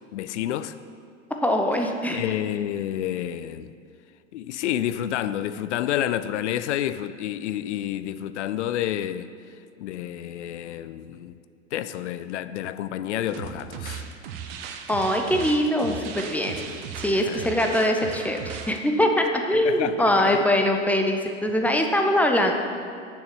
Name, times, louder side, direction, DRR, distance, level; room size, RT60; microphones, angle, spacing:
voice 1, 0.1-0.7 2.1-3.7 4.3-9.3 9.8-11.4 11.7-14.0 16.7-16.8 17.1-17.5 19.6-20.4, left 11 dB, 65° left, 13 dB, 0.5 m, -29 dB
voice 2, 1.4-2.2 14.9-16.6 16.9-22.5, left 1 dB, 5° left, 3 dB, 0.7 m, -22 dB
sound 1, 13.3-18.8, right 7 dB, 50° right, 0.9 m, -37 dB
7.0 x 6.3 x 7.0 m, 2.2 s
figure-of-eight pair, 90°, 38 cm